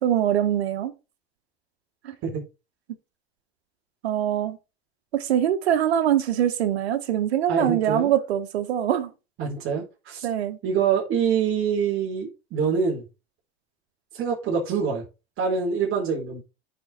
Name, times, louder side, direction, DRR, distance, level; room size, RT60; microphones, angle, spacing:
voice 1, 0.0-0.9 2.0-2.2 4.0-4.6 5.1-9.1 10.2-10.6, right 10 dB, 85° right, 1.8 m, -23 dB
voice 2, 7.5-8.1 9.4-10.3 10.6-13.0 14.1-15.0 15.4-16.4, right 6 dB, 40° right, 4.4 m, -25 dB
8.5 x 5.9 x 4.4 m
supercardioid pair, 110°, 31 cm